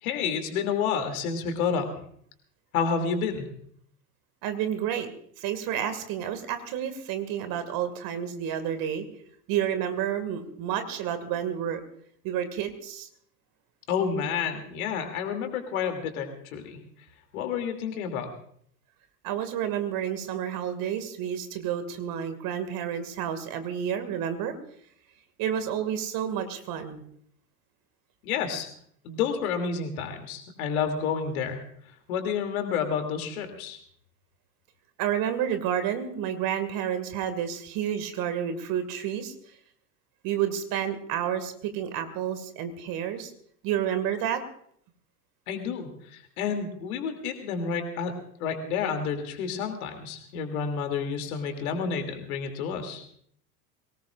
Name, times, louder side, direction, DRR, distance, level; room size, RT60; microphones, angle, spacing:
voice 1, 0.0-1.9 2.7-3.5 13.9-16.8 17.3-18.3 28.2-28.7 29.0-31.6 32.1-33.8 45.5-53.0, left 6 dB, 60° left, 6 dB, 3.0 m, -30 dB
voice 2, 4.4-5.1 5.4-9.1 9.5-11.8 12.2-13.1 19.2-24.5 25.4-27.0 35.0-39.3 40.2-43.3 43.6-44.4, right 9 dB, 45° right, 9 dB, 2.2 m, -30 dB
23.0 x 18.5 x 2.5 m, 0.64 s
figure-of-eight pair, 80°, 48 cm